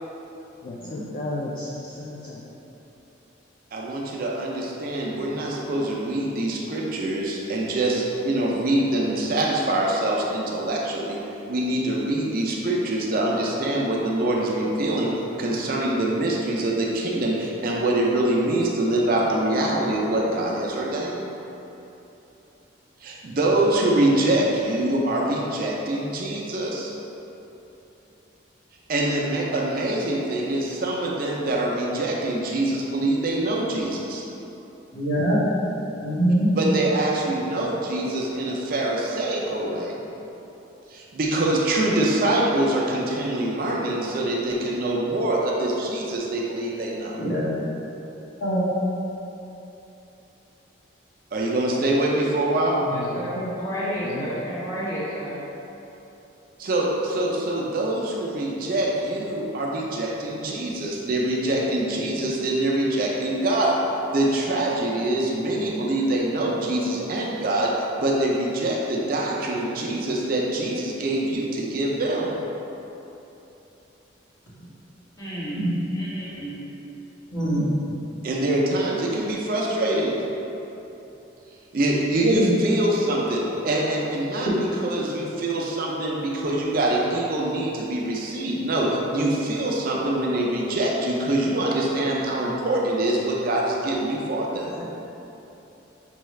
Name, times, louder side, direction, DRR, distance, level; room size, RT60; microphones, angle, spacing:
voice 1, 0.6-2.5 52.9-53.3 54.0-54.3, left 2 dB, 45° left, -5 dB, 0.3 m, -34 dB
voice 2, 3.7-11.2 11.5-15.1 15.4-21.3 23.0-26.9 28.9-34.2 36.6-40.0 40.9-47.1 51.3-52.8 56.6-72.3 78.2-80.1 81.7-83.4 83.6-84.5 84.8-94.7, right 1 dB, 45° right, -2 dB, 0.4 m, -24 dB
voice 3, 34.9-35.4 36.0-36.5 47.2-47.4 48.4-48.6 52.7-52.9 53.3-53.5 74.6-74.7 75.6-75.7 77.3-77.6 82.2-82.5 94.6-94.8, right 1 dB, 65° left, -10 dB, 1.3 m, -24 dB
voice 4, 52.9-55.4 75.2-75.7 75.9-76.6, equal, 20° left, -11 dB, 1.1 m, -31 dB
5.5 x 2.3 x 3.1 m, 3.0 s
head